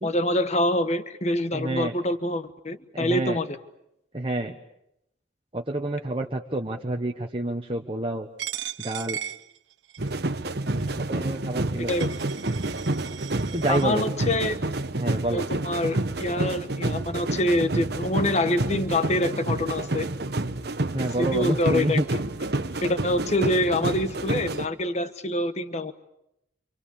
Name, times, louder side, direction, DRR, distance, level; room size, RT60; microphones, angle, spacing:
voice 1, 0.0-3.6 11.8-12.3 13.7-14.6 15.3-20.1 21.0-22.2 22.8-25.9, left 1 dB, 35° left, 11 dB, 1.3 m, -26 dB
voice 2, 1.5-1.9 2.9-3.4 4.1-4.5 5.5-8.3 8.8-9.2 11.0-11.9 13.5-14.0 14.9-15.4 20.9-22.0, right 1 dB, 30° right, 2 dB, 1.2 m, -28 dB
Coin (dropping), 8.4-10.2 10.8-10.9 11.6-11.7 11.9-13.9, right 11 dB, 90° right, 1.1 m, -37 dB
sound 1, 10.0-24.7, right 2 dB, 60° right, 1.1 m, -29 dB
27.5 x 27.0 x 7.1 m, 0.82 s
head